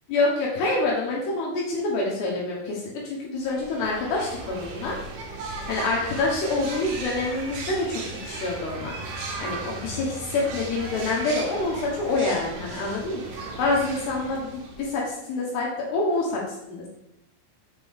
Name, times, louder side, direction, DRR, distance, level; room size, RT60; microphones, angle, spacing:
voice 1, 0.1-5.0 5.7-9.0 9.4-16.4 16.7-16.9, left 2 dB, 70° left, -3 dB, 2.7 m, -27 dB
sound 1, 3.4-15.0, right 3 dB, 70° right, 2.2 m, -36 dB
6.6 x 5.1 x 3.6 m, 0.81 s
omnidirectional pair, 5.9 m